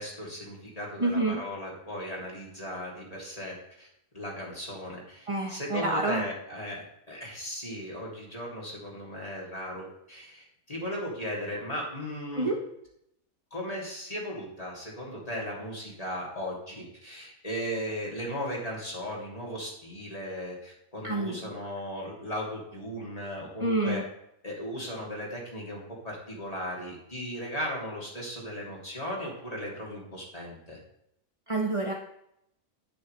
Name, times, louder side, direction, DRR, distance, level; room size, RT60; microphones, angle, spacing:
voice 1, 0.0-3.9 4.1-12.5 13.5-24.0 24.4-30.8, equal, 25° left, -3 dB, 2.9 m, -37 dB
voice 2, 1.0-1.4 5.3-6.2 12.3-12.6 21.0-21.5 23.6-24.0 31.5-31.9, right 2 dB, 25° right, 1 dB, 0.9 m, -28 dB
10.5 x 9.8 x 3.3 m, 0.79 s
omnidirectional pair, 1.4 m